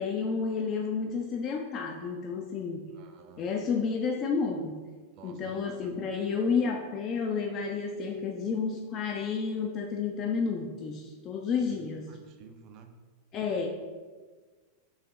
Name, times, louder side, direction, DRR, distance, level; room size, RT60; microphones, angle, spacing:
voice 1, 0.0-2.8 3.4-4.8 5.2-12.1 13.3-13.7, left 5 dB, 35° left, 2 dB, 0.3 m, -31 dB
voice 2, 2.9-3.5 5.2-5.9 12.1-12.9, right 6 dB, 40° right, 6 dB, 0.4 m, -51 dB
3.9 x 2.9 x 2.9 m, 1.4 s
figure-of-eight pair, 90°, 0 cm